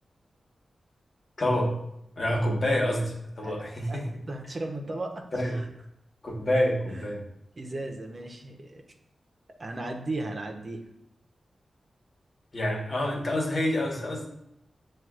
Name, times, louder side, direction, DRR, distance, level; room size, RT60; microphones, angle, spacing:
voice 1, 1.4-1.7 2.2-4.0 5.3-5.6 6.2-7.2 12.5-14.3, left 1 dB, 55° left, -2 dB, 1.4 m, -27 dB
voice 2, 3.4-4.0 4.3-5.7 6.9-7.2 7.6-8.8 9.6-10.8, right 2 dB, 50° right, 2 dB, 0.9 m, -36 dB
7.5 x 2.6 x 2.5 m, 0.80 s
cardioid pair, 40°, 0 cm